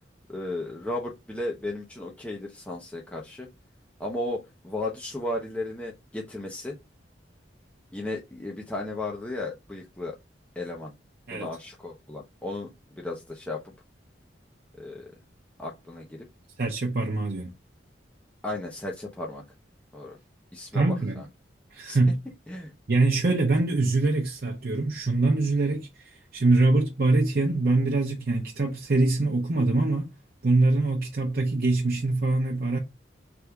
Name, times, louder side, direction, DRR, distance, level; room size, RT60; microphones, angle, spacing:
voice 1, 0.3-3.5 4.0-6.8 7.9-10.1 10.6-10.9 11.3-13.7 14.8-15.1 15.6-16.3 18.4-19.4 19.9-20.2 20.5-20.8 21.2-21.3 21.9-22.0 22.5-22.7, left 2 dB, 5° left, 0.7 m, -34 dB
voice 2, 16.6-17.5 20.7-21.3 21.7-22.2 22.9-30.1 30.4-32.8, right 2 dB, 55° right, 0.7 m, -24 dB
3.5 x 2.7 x 4.5 m
head